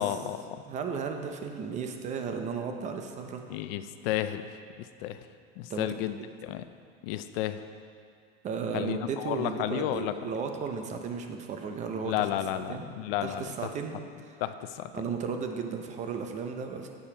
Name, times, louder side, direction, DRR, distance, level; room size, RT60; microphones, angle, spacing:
voice 1, 0.0-0.6 3.5-4.4 4.8-5.2 5.6-6.7 7.0-7.6 8.7-10.1 12.0-13.7 14.4-15.0, left 12 dB, 70° left, 11 dB, 0.5 m, -32 dB
voice 2, 0.7-3.6 5.7-5.9 8.4-12.3 12.5-12.8 13.2-13.9 14.9-16.9, right 6 dB, 25° right, 5 dB, 0.5 m, -34 dB
7.2 x 7.2 x 4.9 m, 2.2 s
supercardioid pair, 160°, 30 cm